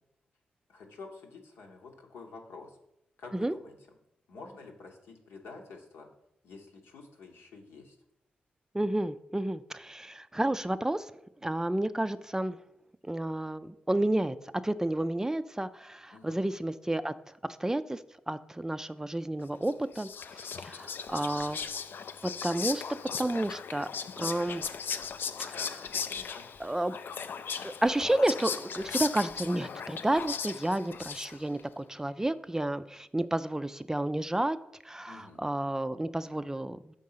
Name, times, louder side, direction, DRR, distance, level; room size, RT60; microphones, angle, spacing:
voice 1, 0.7-2.8 3.2-3.7 4.3-6.1 6.4-8.0 16.1-16.4 25.5-26.5 35.0-35.4, left 3 dB, 85° left, 1 dB, 1.0 m, -49 dB
voice 2, 8.7-11.1 11.4-12.6 13.0-14.4 14.6-17.1 17.6-18.0 18.3-20.1 20.6-21.6 22.4-22.8 23.2-23.9 24.2-24.6 25.4-25.6 26.6-27.0 27.6-34.6 34.8-37.0, right 1 dB, 15° right, 12 dB, 0.3 m, -31 dB
Whispering, 19.6-31.6, left 6 dB, 65° left, 0.3 m, -37 dB
5.3 x 3.7 x 5.6 m, 0.80 s
supercardioid pair, 45°, 4 cm